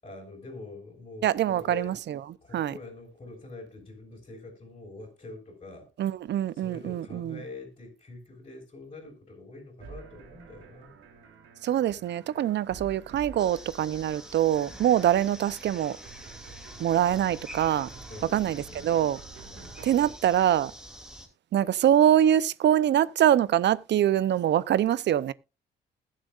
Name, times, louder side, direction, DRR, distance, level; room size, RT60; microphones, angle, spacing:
voice 1, 0.0-2.0 2.4-5.9 6.5-10.9 11.9-12.0 14.7-14.9 18.1-19.0 19.5-19.9, left 3 dB, 30° left, 5.9 m, -45 dB
voice 2, 1.2-2.2 2.5-2.7 6.0-7.4 11.6-16.0 16.8-17.9 18.3-19.2 19.8-20.7 21.5-25.3, right 11 dB, 65° right, 0.7 m, -24 dB
sound 1, 9.8-20.1, right 6 dB, 85° right, 3.0 m, -49 dB
sound 2, 13.4-21.3, equal, 5° right, 2.8 m, -46 dB
20.5 x 7.6 x 2.5 m
cardioid pair, 90°, 20 cm